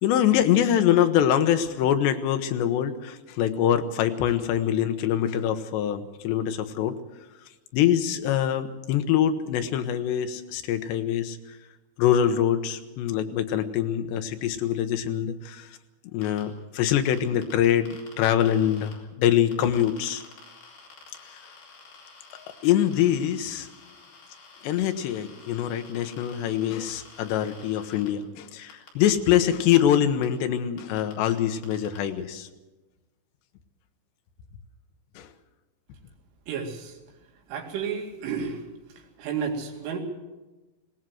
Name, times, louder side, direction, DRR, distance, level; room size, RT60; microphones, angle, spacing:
voice 1, 0.0-7.0 7.7-11.6 12.0-15.8 16.1-20.2 22.3-23.7 24.6-32.5 35.2-35.3, left 10 dB, 75° left, 8 dB, 3.0 m, -24 dB
sound 1, 16.2-16.4 16.9-18.9 19.5-28.1 28.7-29.1 29.8-29.9 30.2-30.3 30.8-31.3 31.6-32.0, left 4 dB, 55° left, 5.7 m, -50 dB
voice 2, 36.5-37.0 37.5-38.6 39.2-40.0, right 6 dB, 80° right, 2 dB, 4.8 m, -31 dB
19.0 x 18.0 x 7.7 m, 1.1 s
omnidirectional pair, 5.6 m